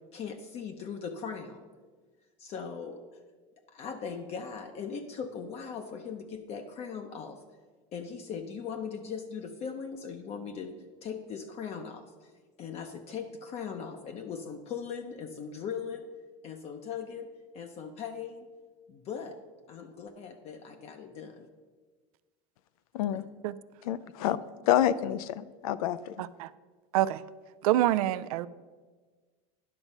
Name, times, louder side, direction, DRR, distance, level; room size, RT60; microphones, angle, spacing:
voice 1, 0.1-1.6 2.4-3.0 3.7-7.4 7.9-10.8 11.0-12.3 12.6-16.0 16.4-17.3 17.5-18.5 18.9-19.4 19.7-21.5 23.0-23.2, left 6 dB, 35° left, 5 dB, 0.6 m, -39 dB
voice 2, 22.9-23.2 23.8-24.4 24.7-26.1, left 11 dB, 85° left, 16 dB, 0.5 m, -28 dB
voice 3, 27.6-28.5, right 13 dB, 90° right, 14 dB, 0.4 m, -25 dB
10.5 x 6.0 x 5.4 m, 1.4 s
supercardioid pair, 140°, 18 cm